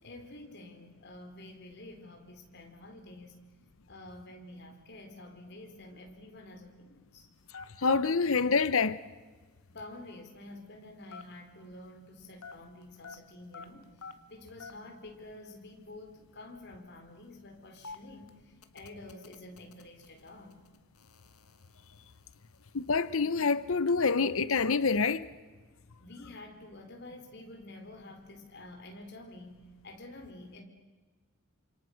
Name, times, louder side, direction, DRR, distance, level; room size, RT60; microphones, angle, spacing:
voice 1, 0.0-3.4 3.9-7.3 9.7-20.6 26.0-30.6, left 2 dB, 50° left, 4.2 m, -49 dB
sound 1, 7.3-12.1 12.4-15.0 15.2-15.3 15.5-15.8 16.4-24.0, left 4 dB, 85° left, 1.7 m, -51 dB
voice 2, 7.8-9.0 22.7-25.3, left 4 dB, 70° left, 0.9 m, -26 dB
29.0 x 26.5 x 6.5 m
head